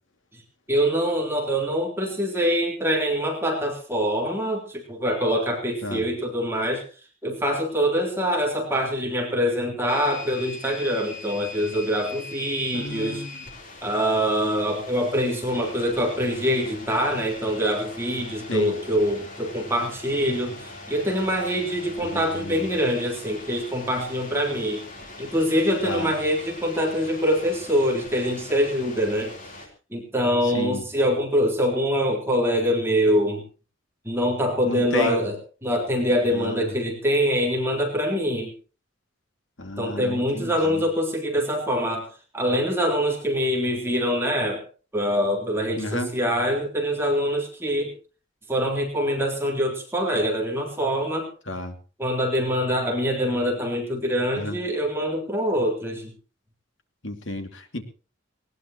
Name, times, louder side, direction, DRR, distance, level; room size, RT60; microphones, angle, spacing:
voice 1, 0.7-6.8 7.2-13.2 13.8-24.8 25.2-29.3 29.9-33.4 34.0-35.3 35.6-38.5 39.8-42.1 42.3-44.6 44.9-47.9 48.5-51.3 52.0-56.1, equal, 10° right, 0 dB, 3.6 m, -24 dB
AT&T Cordless Phone receive Call call dropped AM Radio, 9.9-29.7, left 2 dB, 40° left, 4.0 m, -42 dB
voice 2, 12.7-13.5 18.5-18.8 22.0-22.7 25.8-26.1 30.4-30.8 34.7-35.2 36.3-36.7 39.6-40.9 45.8-46.1 51.5-51.8 54.4-54.6 57.0-57.8, left 1 dB, 65° left, 6 dB, 2.6 m, -32 dB
19.5 x 19.0 x 3.0 m, 0.36 s
head